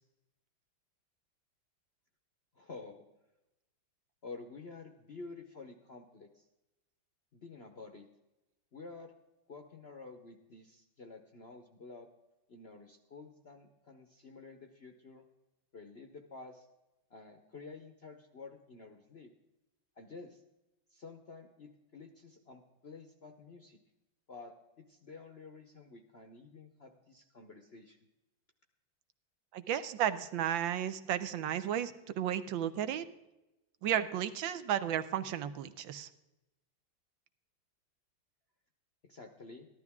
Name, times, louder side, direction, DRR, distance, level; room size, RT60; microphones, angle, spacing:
voice 1, 2.5-3.0 4.2-6.4 7.3-8.1 8.7-9.1 9.5-12.1 12.5-15.3 15.7-16.7 17.1-19.3 20.0-20.4 20.9-23.8 24.3-28.0 39.0-39.7, left 4 dB, 50° left, 5 dB, 0.8 m, -50 dB
voice 2, 29.5-33.0 33.8-36.1, right 10 dB, 75° right, 11 dB, 1.4 m, -33 dB
14.5 x 12.0 x 3.5 m, 0.97 s
omnidirectional pair, 2.2 m